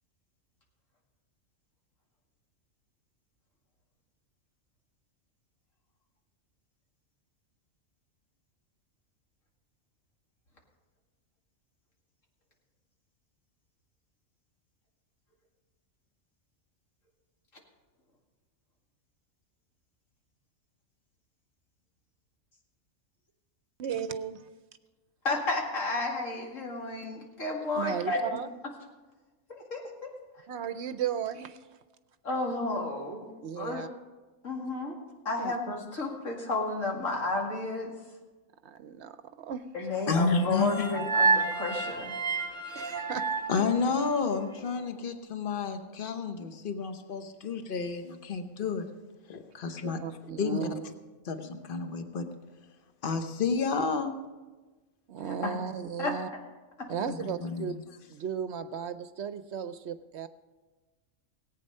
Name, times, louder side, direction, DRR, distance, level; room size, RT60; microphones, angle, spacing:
voice 1, 23.8-24.5 27.7-28.5 30.5-31.7 33.4-33.9 35.4-35.5 38.6-39.6 42.8-43.2 49.8-50.9 55.1-56.3 56.9-57.7 58.1-60.3, right 8 dB, 65° right, 12 dB, 0.8 m, -35 dB
voice 2, 25.2-28.4 29.5-30.1 32.2-33.8 34.4-34.9 35.2-37.9 39.7-42.2 55.4-55.5 56.0-56.1 56.8-56.9, left 2 dB, 75° left, 0 dB, 2.6 m, -32 dB
voice 3, 40.1-40.9 43.5-48.9 49.3-50.0 50.4-50.7 51.3-52.3 53.0-54.1 57.1-57.8, left 4 dB, 45° left, 7 dB, 1.1 m, -30 dB
sound 1, 40.3-44.5, right 4 dB, 5° left, 1.3 m, -30 dB
18.5 x 8.8 x 5.4 m, 1.2 s
omnidirectional pair, 1.3 m